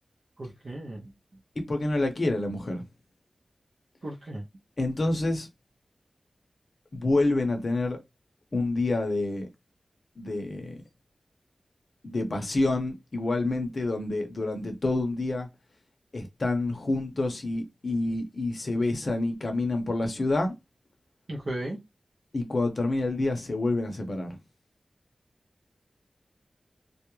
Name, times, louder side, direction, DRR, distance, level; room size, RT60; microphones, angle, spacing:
voice 1, 0.4-1.1 4.0-4.4 21.3-21.8, right 1 dB, 60° right, 0.6 m, -35 dB
voice 2, 1.6-2.8 4.8-5.5 6.9-8.0 8.5-9.5 10.2-10.8 12.0-15.5 16.1-20.5 22.3-24.4, left 2 dB, 55° left, 0.6 m, -28 dB
2.3 x 2.0 x 3.0 m
wide cardioid pair, 85°, 0 cm